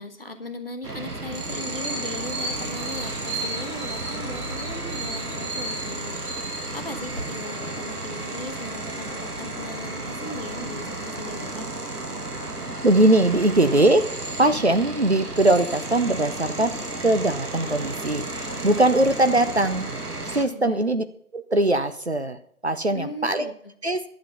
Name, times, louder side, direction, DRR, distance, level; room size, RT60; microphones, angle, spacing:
voice 1, 0.0-6.2 6.7-11.7 20.5-20.8 22.9-23.7, left 1 dB, 40° left, 6 dB, 1.3 m, -38 dB
sound 1, 0.8-20.5, right 2 dB, 85° right, 1.9 m, -33 dB
sound 2, 1.8-7.2, right 2 dB, 25° right, 3.4 m, -35 dB
voice 2, 12.8-14.1 14.4-16.7 17.0-19.9 20.3-21.0 21.3-23.5 23.8-24.0, right 1 dB, 45° right, 9 dB, 0.8 m, -21 dB
11.5 x 7.3 x 6.8 m, 0.63 s
figure-of-eight pair, 165°, 45 cm